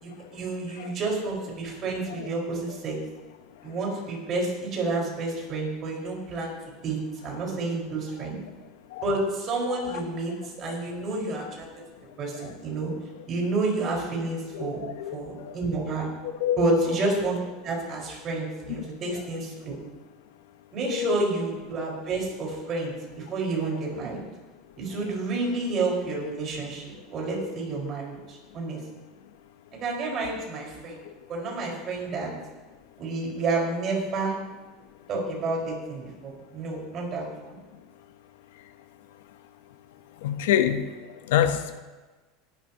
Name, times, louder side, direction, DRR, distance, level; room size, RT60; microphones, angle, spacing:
voice 1, 0.0-3.0 3.6-6.5 6.8-7.0 7.2-8.4 9.0-11.7 12.2-12.9 13.3-14.8 15.1-16.1 16.6-17.4 17.6-19.8 20.7-24.3 24.8-28.8 29.7-31.0 31.3-32.3 33.0-34.3 35.1-37.6, right 3 dB, 35° right, -2 dB, 4.8 m, -30 dB
voice 2, 14.5-15.5 16.4-16.6 20.9-21.1 40.2-40.9 41.3-41.8, left 10 dB, 85° left, 10 dB, 0.9 m, -26 dB
19.5 x 11.5 x 2.9 m, 1.3 s
supercardioid pair, 140°, 0 cm